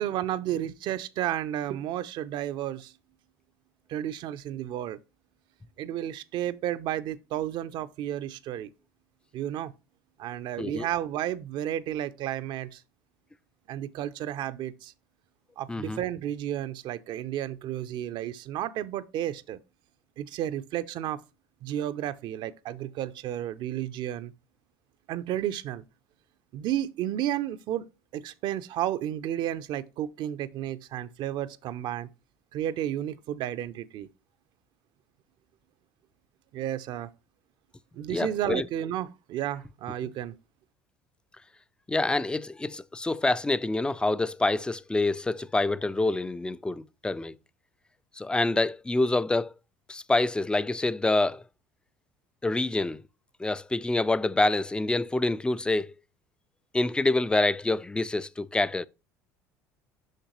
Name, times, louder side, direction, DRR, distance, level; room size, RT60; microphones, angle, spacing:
voice 1, 0.0-2.9 3.9-5.0 5.8-8.7 9.3-9.7 10.2-12.8 13.7-14.9 15.6-19.6 20.2-21.2 21.6-24.3 25.1-25.8 26.5-27.9 28.1-32.1 32.5-34.1 36.5-37.1 37.9-40.3, right 12 dB, 60° right, 0.5 m, -32 dB
voice 2, 15.7-16.0 38.1-38.7 41.9-47.4 48.2-49.5 49.9-51.4 52.4-53.0 53.4-55.9 56.7-58.9, left 2 dB, 10° left, 0.3 m, -26 dB
6.5 x 5.7 x 3.0 m
hypercardioid pair, 75°, 9 cm